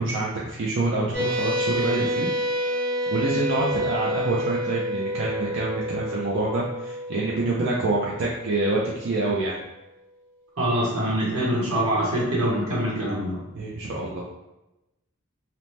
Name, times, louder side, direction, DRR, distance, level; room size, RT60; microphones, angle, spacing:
voice 1, 0.0-2.3 3.1-9.6 13.5-14.3, right 2 dB, 55° right, -4 dB, 0.4 m, -26 dB
sound 1, 1.1-9.2, equal, 5° right, 0.9 m, -29 dB
voice 2, 10.6-13.4, right 1 dB, 90° right, -6 dB, 0.9 m, -24 dB
2.8 x 2.0 x 3.1 m, 0.96 s
head